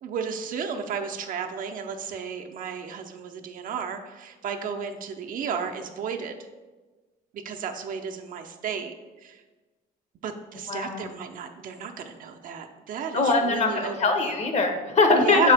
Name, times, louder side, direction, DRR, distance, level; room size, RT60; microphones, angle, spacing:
voice 1, 0.0-6.4 7.3-8.9 9.2-9.4 10.2-14.0 14.3-14.4 15.2-15.5, right 7 dB, 55° right, 4 dB, 0.6 m, -33 dB
voice 2, 10.7-11.1 13.1-15.5, left 3 dB, 40° left, 5 dB, 0.9 m, -22 dB
6.4 x 4.8 x 3.4 m, 1.3 s
cardioid pair, 110°, 17 cm